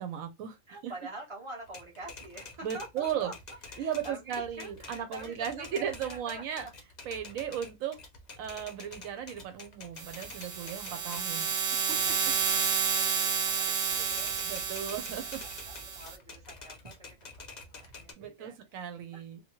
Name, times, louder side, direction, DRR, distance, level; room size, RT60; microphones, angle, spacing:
voice 1, 0.0-0.6 0.8-0.9 2.6-3.3 3.8-6.7 7.0-8.0 8.4-12.4 14.4-15.4 18.2-19.4, right 9 dB, 85° right, 1.0 m, -36 dB
voice 2, 0.7-3.3 3.7-6.7 10.6-11.1 12.2-14.3 14.8-17.2 17.5-18.6 19.1-19.2, right 2 dB, 25° right, 1.1 m, -47 dB
Typewriter, 1.6-11.3 11.7-13.5 13.9-18.1, left 4 dB, 45° left, 0.6 m, -49 dB
sound 1, 10.0-16.2, right 6 dB, 65° right, 0.9 m, -31 dB
2.8 x 2.3 x 2.9 m
omnidirectional pair, 1.4 m